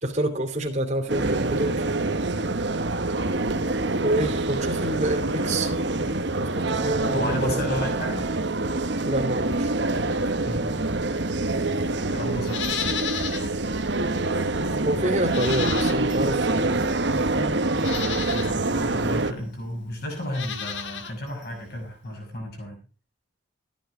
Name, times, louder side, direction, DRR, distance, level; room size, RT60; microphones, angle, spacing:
voice 1, 0.0-1.9 4.0-5.8 6.4-7.8 9.0-9.7 14.8-16.9, right 1 dB, 35° right, 4 dB, 2.8 m, -27 dB
sound 1, 1.1-19.3, right 2 dB, 60° right, 1.1 m, -26 dB
voice 2, 7.1-8.3 10.5-10.8 12.1-13.1 18.3-22.8, left 1 dB, 50° left, 2 dB, 6.0 m, -32 dB
Livestock farm animals working animals, 12.4-13.5 13.9-14.0 15.2-16.3 17.1-17.2 17.7-18.5 20.2-21.1 21.4-21.5, left 7 dB, 65° left, 1.6 m, -32 dB
14.5 x 10.5 x 4.9 m, 0.37 s
head